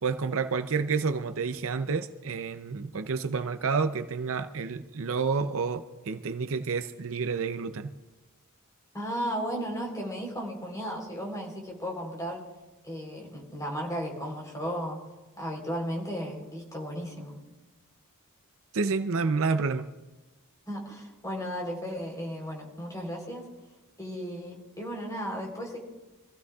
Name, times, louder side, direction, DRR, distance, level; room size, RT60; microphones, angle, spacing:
voice 1, 0.0-7.9 18.7-19.9, right 4 dB, 65° right, 0.6 m, -29 dB
voice 2, 8.9-12.4 12.8-15.0 15.4-17.4 20.7-23.5 24.0-25.8, equal, 15° left, 3.8 m, -35 dB
25.5 x 15.5 x 2.4 m
head